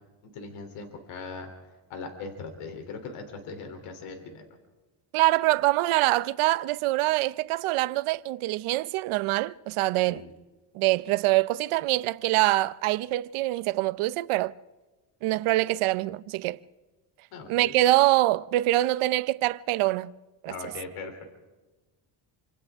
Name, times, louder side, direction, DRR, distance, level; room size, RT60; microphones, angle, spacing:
voice 1, 0.3-1.5 1.9-4.5 10.1-10.3 17.3-17.7 20.5-21.2, left 4 dB, 85° left, 3.4 m, -39 dB
voice 2, 5.1-10.2 10.7-14.5 15.2-16.6 17.5-20.1 20.4-20.5, right 17 dB, 75° right, 0.8 m, -24 dB
27.5 x 26.0 x 3.6 m
cardioid pair, 105°, 50 cm